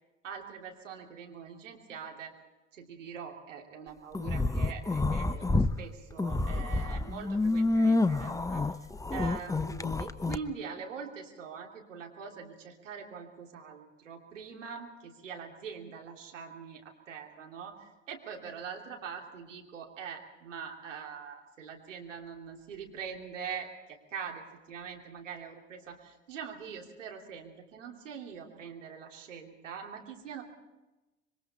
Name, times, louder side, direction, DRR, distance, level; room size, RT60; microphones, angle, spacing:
voice 1, 0.2-2.3 2.7-8.6 9.1-24.4 24.7-30.4, right 6 dB, 80° right, 1 dB, 3.1 m, -43 dB
sound 1, 4.1-5.7 6.1-10.4, left 2 dB, 10° left, 0.9 m, -28 dB
27.0 x 23.0 x 4.3 m, 1.1 s
figure-of-eight pair, 65°, 37 cm